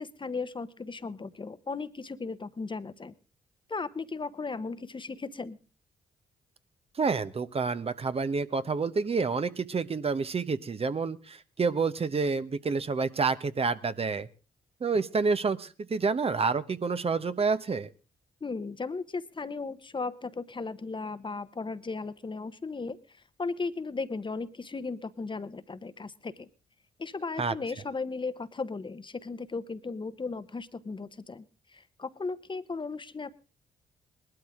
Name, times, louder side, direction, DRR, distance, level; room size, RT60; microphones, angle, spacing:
voice 1, 0.0-3.1 3.7-5.6 18.4-23.0 23.4-26.5 27.0-31.4 31.7-33.3, left 4 dB, 30° left, 13 dB, 1.0 m, -36 dB
voice 2, 7.0-14.3 14.8-17.9 27.4-27.5, right 4 dB, 40° right, 12 dB, 0.9 m, -28 dB
19.5 x 12.5 x 3.6 m, 0.34 s
supercardioid pair, 50°, 16 cm